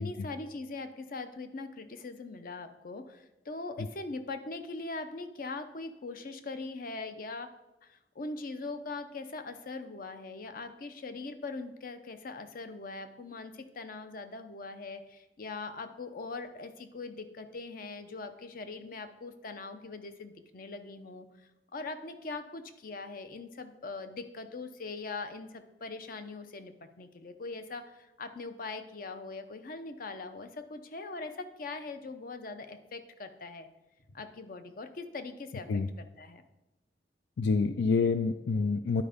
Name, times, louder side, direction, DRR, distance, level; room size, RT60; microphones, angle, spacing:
voice 1, 0.0-7.5 7.8-21.3 21.7-33.7 34.1-35.7 36.0-36.4, left 3 dB, 55° left, 9 dB, 0.7 m, -41 dB
voice 2, 37.4-39.0, left 4 dB, 90° left, 10 dB, 0.4 m, -27 dB
9.8 x 4.4 x 5.0 m, 0.99 s
head